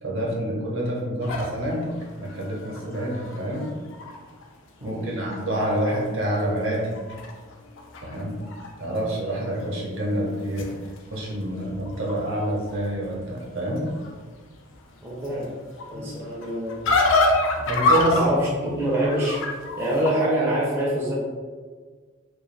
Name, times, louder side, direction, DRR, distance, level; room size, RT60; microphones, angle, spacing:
voice 1, 0.0-1.9 2.2-3.7 4.8-6.9 8.0-8.4 8.8-10.7 11.1-13.9 15.9-16.1 17.7-18.2, right 1 dB, 70° right, -3 dB, 0.7 m, -27 dB
sound 1, 1.2-4.4 4.9-5.0 5.3-6.1 6.4-8.7 9.0-9.5 10.1-20.1, left 2 dB, 65° left, 0.4 m, -28 dB
voice 2, 4.8-5.2 15.0-15.5 15.9-16.8 18.1-19.4 19.8-21.1, right 1 dB, 10° right, -6 dB, 0.4 m, -25 dB
2.3 x 2.2 x 3.1 m, 1.5 s
head